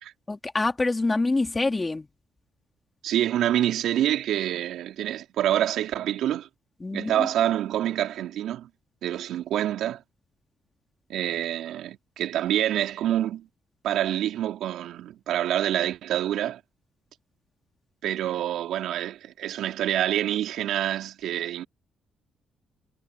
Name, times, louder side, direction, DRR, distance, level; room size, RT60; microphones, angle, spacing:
voice 1, 0.3-2.1 6.8-7.3, left 2 dB, 25° left, 3.9 m, -26 dB
voice 2, 3.0-6.5 6.9-8.7 9.0-10.0 11.1-13.5 13.8-16.6 18.0-21.6, right 12 dB, 75° right, 3.9 m, -27 dB
supercardioid pair, 55°, 0 cm